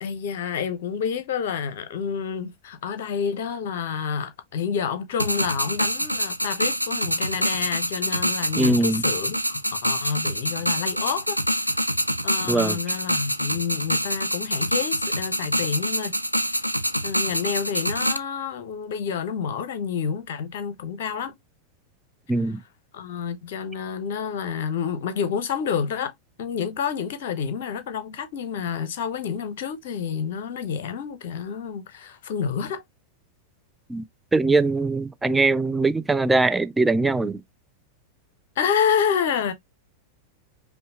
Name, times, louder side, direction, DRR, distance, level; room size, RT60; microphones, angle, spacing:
voice 1, 0.0-11.4 12.2-16.2 17.0-21.3 22.9-26.1 26.4-32.8 38.6-39.5, left 7 dB, 55° left, 0.8 m, -29 dB
sound 1, 5.2-18.2, equal, 90° left, 0.3 m, -26 dB
voice 2, 8.6-9.0 12.5-12.8 22.3-22.6 33.9-34.0 34.3-37.4, right 3 dB, 10° right, 0.3 m, -21 dB
5.2 x 2.2 x 2.8 m
figure-of-eight pair, 90°, 0 cm